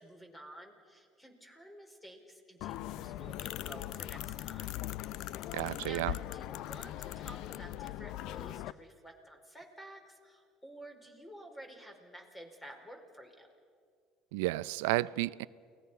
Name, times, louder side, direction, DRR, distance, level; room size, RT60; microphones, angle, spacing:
voice 1, 0.0-4.8 5.5-6.1 6.3-13.5, right 1 dB, 15° left, 4 dB, 4.8 m, -52 dB
sound 1, 2.6-8.7, left 14 dB, 65° left, 0.5 m, -40 dB
voice 2, 5.5-6.1 14.3-15.5, right 19 dB, 85° right, 18 dB, 0.5 m, -32 dB
29.0 x 19.5 x 5.7 m, 2.2 s
supercardioid pair, 90°, 0 cm